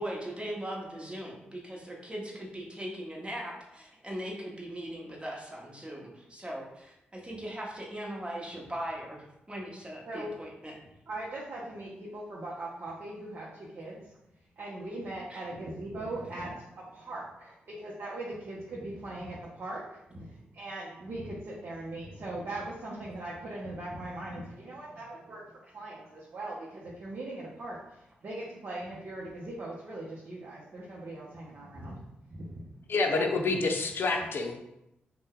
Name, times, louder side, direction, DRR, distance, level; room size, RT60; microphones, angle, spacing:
voice 1, 0.0-10.7 15.3-15.5 33.1-33.3, right 1 dB, 25° right, -2 dB, 1.0 m, -39 dB
voice 2, 11.1-14.1 14.6-32.0 32.3-32.6 33.1-33.2, right 2 dB, 60° right, -5 dB, 0.6 m, -40 dB
voice 3, 32.9-34.6, left 3 dB, 60° left, 3 dB, 0.5 m, -28 dB
2.7 x 2.2 x 3.7 m, 0.86 s
supercardioid pair, 50°, 4 cm